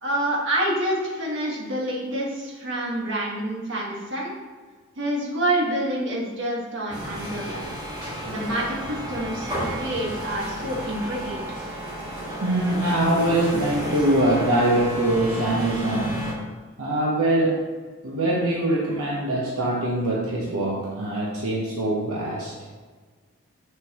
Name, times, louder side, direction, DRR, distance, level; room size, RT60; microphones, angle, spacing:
voice 1, 0.0-4.3 5.0-7.7 8.3-11.4, right 1 dB, 55° right, -3 dB, 1.7 m, -27 dB
sound 1, 6.9-16.3, equal, 20° right, 1.7 m, -32 dB
voice 2, 12.4-16.3 16.8-17.6 18.0-22.5, right 1 dB, 75° right, -4 dB, 1.1 m, -23 dB
6.8 x 6.4 x 3.1 m, 1.5 s
head